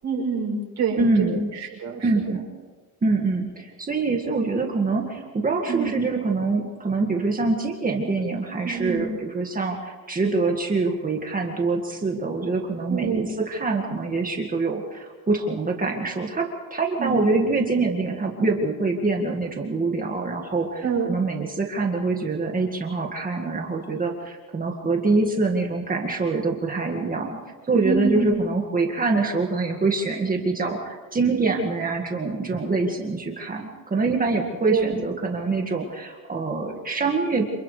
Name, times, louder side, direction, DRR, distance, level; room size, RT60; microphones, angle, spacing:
voice 1, 0.0-2.1 5.7-5.9 8.6-9.0 12.9-13.2 17.0-17.2 20.8-21.2 27.8-28.4 34.7-34.9, right 5 dB, 50° right, -1 dB, 7.2 m, -26 dB
voice 2, 1.0-1.5 2.0-2.5 3.0-27.4 27.7-37.5, right 3 dB, 25° right, 1 dB, 1.9 m, -25 dB
29.0 x 27.5 x 3.3 m, 1.4 s
cardioid pair, 145°, 35 cm